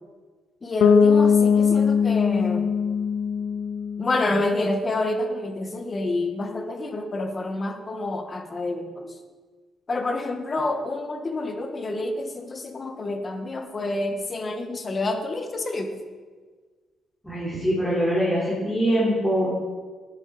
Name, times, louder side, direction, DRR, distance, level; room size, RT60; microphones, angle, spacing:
voice 1, 0.6-2.7 4.0-9.2 9.9-16.0, left 2 dB, 35° left, 5 dB, 1.3 m, -28 dB
Bass guitar, 0.8-4.7, left 6 dB, 75° left, 0.5 m, -20 dB
voice 2, 17.2-19.6, equal, 5° left, -7 dB, 3.1 m, -23 dB
11.0 x 8.6 x 4.2 m, 1.5 s
cardioid pair, 90°, 0 cm